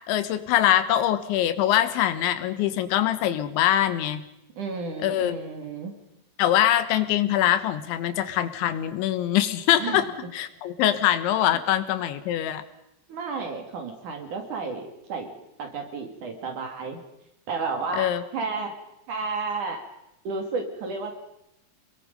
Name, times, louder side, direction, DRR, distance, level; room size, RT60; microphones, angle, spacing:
voice 1, 0.1-4.2 5.0-5.4 6.4-10.1 10.3-12.6 18.0-18.2, left 12 dB, 85° left, 11 dB, 3.6 m, -23 dB
voice 2, 4.6-5.9 9.8-10.0 13.1-15.3 15.6-17.0 17.5-18.7 19.1-19.8 20.2-21.1, right 4 dB, 50° right, 4 dB, 3.2 m, -32 dB
28.0 x 21.0 x 5.3 m, 0.86 s
omnidirectional pair, 5.2 m